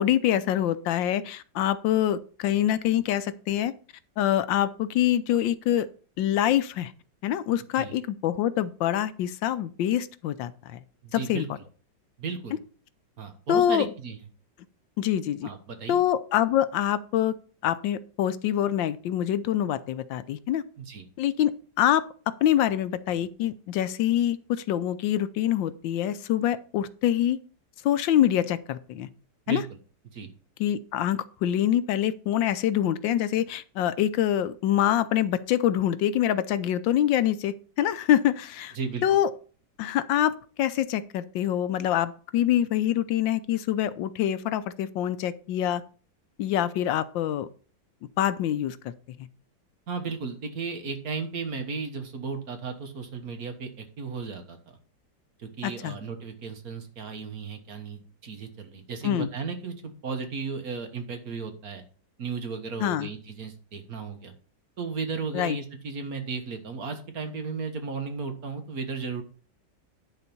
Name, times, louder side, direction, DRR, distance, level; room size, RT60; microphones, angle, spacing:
voice 1, 0.0-3.7 4.2-5.9 6.2-6.9 7.2-10.8 11.1-11.4 13.5-13.9 15.0-15.5 15.9-17.4 17.6-20.6 21.2-21.5 21.8-27.4 27.8-29.1 29.5-29.6 30.6-38.8 39.0-39.3 39.8-45.8 46.4-47.5 48.2-48.9 49.2-49.3 55.6-56.0 59.0-59.3 62.8-63.1 65.3-65.6, left 11 dB, 85° left, 14 dB, 1.4 m, -25 dB
voice 2, 11.0-11.5 12.2-12.6 13.2-14.2 15.4-16.0 20.8-21.1 29.5-29.6 30.1-30.3 38.8-39.1 49.9-54.6 55.4-61.8 62.2-64.3 64.8-69.2, right 4 dB, 55° right, 6 dB, 1.7 m, -35 dB
10.5 x 4.1 x 6.9 m, 0.39 s
omnidirectional pair, 2.0 m